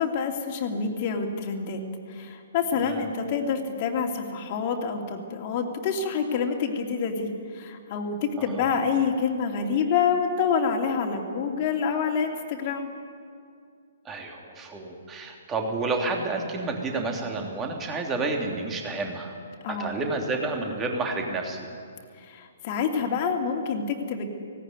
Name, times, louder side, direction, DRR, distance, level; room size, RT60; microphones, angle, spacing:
voice 1, 0.0-1.8 2.1-12.9 19.6-20.0 22.2-24.3, left 6 dB, 35° left, 2 dB, 2.7 m, -27 dB
voice 2, 14.0-19.3 19.8-21.7, right 3 dB, 15° right, 2 dB, 3.1 m, -30 dB
18.0 x 17.0 x 9.6 m, 2.2 s
figure-of-eight pair, 125°, 0 cm